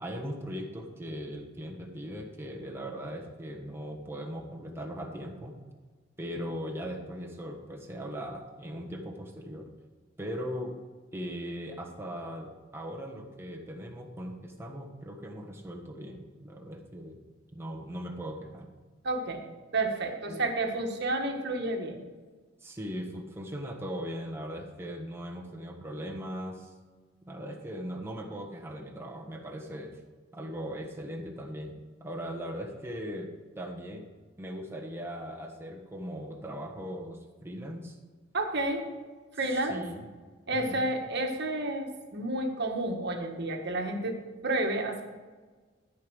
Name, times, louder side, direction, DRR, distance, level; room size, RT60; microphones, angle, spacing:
voice 1, 0.0-5.6 6.2-9.7 10.2-10.7 11.1-17.2 17.5-18.7 20.2-20.5 22.6-26.7 27.3-30.0 30.3-31.7 32.0-34.1 34.4-38.0 39.4-40.0 40.5-40.9, equal, 15° right, 1 dB, 1.3 m, -39 dB
voice 2, 19.0-19.4 19.7-22.0 38.3-38.8 39.3-39.8 40.5-44.2 44.4-45.0, right 2 dB, 60° right, 3 dB, 1.5 m, -30 dB
13.5 x 5.2 x 6.3 m, 1.4 s
head